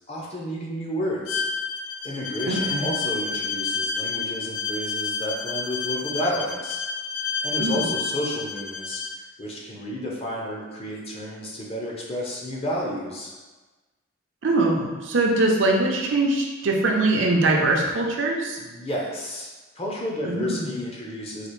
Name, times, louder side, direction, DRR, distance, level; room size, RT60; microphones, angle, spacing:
voice 1, 0.1-1.4 2.0-6.8 7.4-9.0 9.4-13.3 18.6-19.5 19.7-21.5, equal, 30° left, -3 dB, 0.7 m, -31 dB
Bowed string instrument, 1.3-9.2, left 5 dB, 75° left, 0.4 m, -29 dB
voice 2, 2.5-2.9 7.6-7.8 14.4-18.6 20.2-20.6, right 2 dB, 70° right, 0 dB, 0.6 m, -22 dB
4.0 x 2.4 x 3.1 m, 1.2 s
head